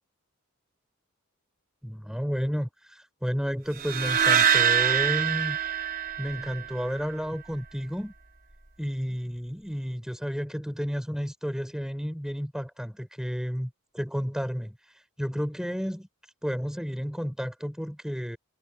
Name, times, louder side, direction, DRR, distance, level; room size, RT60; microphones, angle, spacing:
voice 1, 1.8-5.6 6.2-8.1 8.8-16.1 16.4-18.4, equal, 5° right, 7.7 m, -32 dB
sound 1, 3.8-7.0, right 8 dB, 40° right, 5.0 m, -24 dB
head